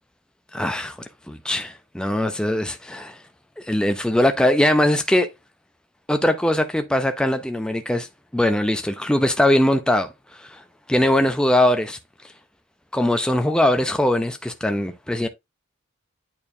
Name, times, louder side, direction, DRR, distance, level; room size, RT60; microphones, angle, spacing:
voice 1, 0.5-3.2 3.6-5.3 6.1-8.1 8.3-10.6 10.9-12.0 12.9-15.3, left 1 dB, 5° left, 0.5 m, -21 dB
8.7 x 4.4 x 2.7 m
head